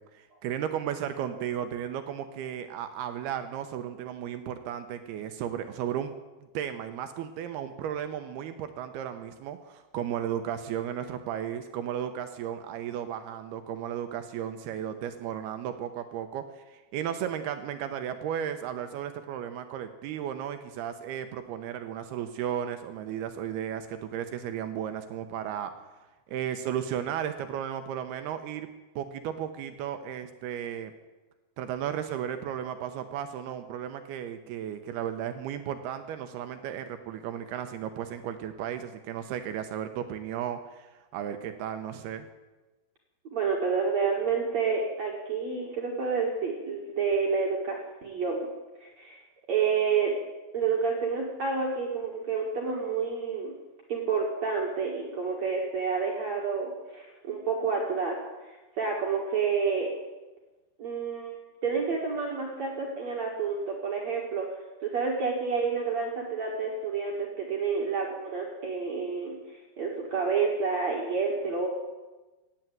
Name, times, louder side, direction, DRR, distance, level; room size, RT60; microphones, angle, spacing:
voice 1, 0.1-6.1 6.5-25.7 26.3-28.7 29.0-30.9 31.6-42.3, right 9 dB, 75° right, 8 dB, 2.6 m, -34 dB
voice 2, 43.3-48.5 48.8-49.2 49.5-50.1 50.5-53.5 53.9-59.9 60.8-61.4 61.6-64.5 64.8-69.4 69.8-71.7, right 5 dB, 50° right, -1 dB, 2.4 m, -29 dB
16.0 x 9.3 x 9.2 m, 1.2 s
omnidirectional pair, 5.0 m